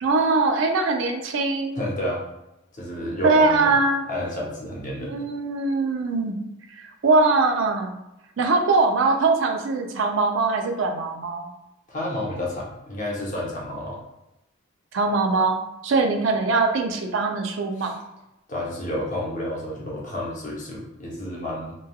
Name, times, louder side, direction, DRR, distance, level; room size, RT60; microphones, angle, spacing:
voice 1, 0.0-1.8 3.2-4.0 5.0-6.4 7.0-7.9 8.4-11.5 14.9-15.6 15.8-18.0, right 3 dB, 75° right, 4 dB, 0.4 m, -22 dB
voice 2, 1.8-2.2 2.7-3.7 4.1-5.2 11.9-14.0 17.8-17.9 18.5-21.7, left 1 dB, 40° left, -4 dB, 0.7 m, -30 dB
3.1 x 2.2 x 2.3 m, 0.91 s
head